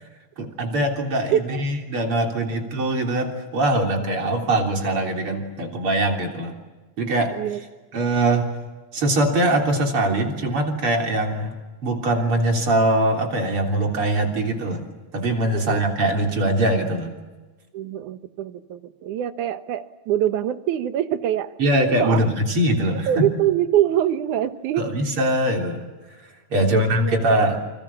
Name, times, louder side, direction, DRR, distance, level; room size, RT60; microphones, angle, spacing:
voice 1, 0.4-6.6 7.0-7.3 7.9-8.5 8.9-11.5 11.8-14.8 15.1-17.1 21.6-23.3 24.8-25.9 26.5-27.6, right 1 dB, 45° right, 2 dB, 4.2 m, -22 dB
voice 2, 1.3-1.6 7.3-7.6 15.5-15.8 17.7-21.5 22.0-22.2 23.1-24.9 26.5-27.1, right 11 dB, 75° right, 11 dB, 2.6 m, -24 dB
29.0 x 26.5 x 7.2 m, 1.3 s
omnidirectional pair, 3.6 m